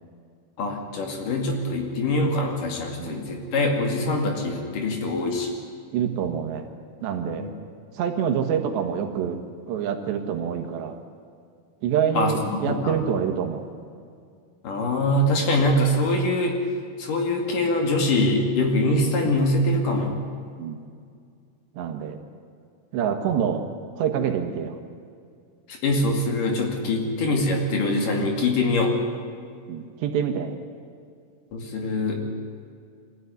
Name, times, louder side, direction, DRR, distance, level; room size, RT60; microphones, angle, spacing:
voice 1, 0.6-5.5 7.4-7.5 12.2-13.0 14.6-16.6 17.0-20.2 25.7-29.0 31.5-32.2, left 1 dB, 55° left, 2 dB, 3.7 m, -23 dB
voice 2, 5.9-6.7 7.0-7.5 8.0-9.4 9.7-11.0 11.8-13.6 15.5-15.6 20.6-20.8 21.8-22.2 22.9-23.7 24.0-24.8 27.0-27.1 29.7-30.5, right 8 dB, 85° right, 5 dB, 3.8 m, -26 dB
24.0 x 15.0 x 9.6 m, 2.3 s
omnidirectional pair, 4.9 m